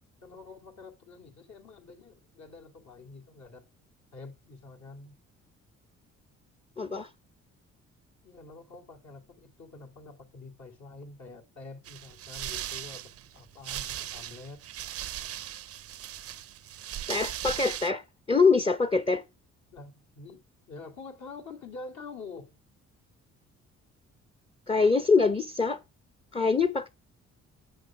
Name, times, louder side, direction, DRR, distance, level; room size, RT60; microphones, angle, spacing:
voice 1, 0.2-3.6 4.1-5.2 8.2-14.6 19.7-22.6, left 3 dB, 65° left, 2.6 m, -47 dB
voice 2, 6.8-7.1 17.1-18.0 18.3-19.2 24.7-25.8 26.3-26.9, left 4 dB, 20° left, 0.7 m, -24 dB
sound 1, 11.9-17.9, right 11 dB, 50° right, 0.5 m, -38 dB
7.5 x 6.5 x 5.8 m
cardioid pair, 90°, 30 cm